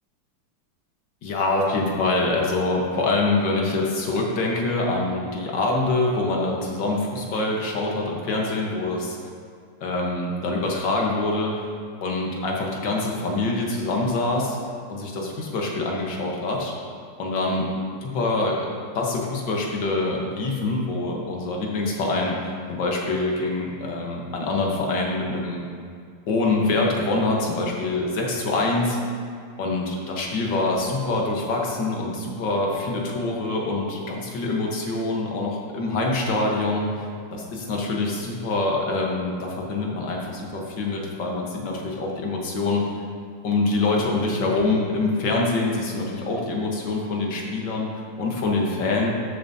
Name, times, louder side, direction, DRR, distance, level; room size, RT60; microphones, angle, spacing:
voice 1, 1.2-9.2 9.8-11.7 12.0-14.6 14.9-16.7 17.2-17.7 18.0-18.5 18.9-25.6 26.3-29.0 29.6-42.8 43.4-49.1, left 2 dB, 70° left, -1 dB, 1.9 m, -25 dB
13.0 x 7.1 x 2.8 m, 2.2 s
omnidirectional pair, 2.1 m